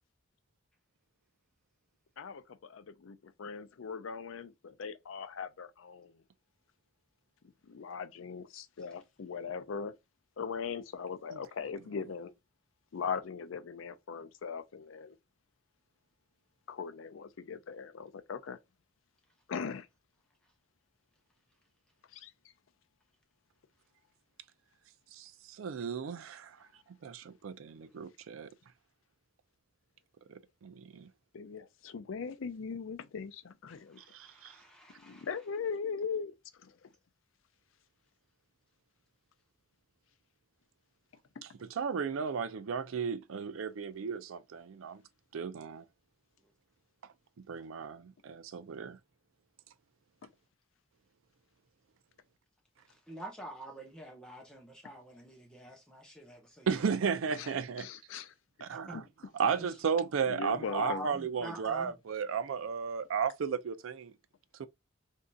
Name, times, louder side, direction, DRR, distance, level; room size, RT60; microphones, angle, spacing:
voice 1, 2.2-6.1 7.7-9.9 10.4-12.3 12.9-15.1 16.7-18.6 19.5-19.9 22.1-22.3 31.3-34.0 35.0-36.3 36.6-36.9 57.4-57.5 57.8-58.3 58.9-59.0 60.3-61.1, left 6 dB, 80° left, 0.5 m, -40 dB
voice 2, 25.1-26.6 27.0-28.5 30.6-31.1 34.1-34.6 41.7-45.0 45.3-45.8 47.5-49.0 56.7-57.9 58.7-58.9 59.4-64.1 64.6-64.7, right 6 dB, 90° right, 0.4 m, -34 dB
voice 3, 33.9-35.3 53.1-56.8 57.4-57.5 58.9-59.0 59.6-59.7 60.5-61.9, equal, 5° left, 0.9 m, -46 dB
3.7 x 2.7 x 2.2 m
head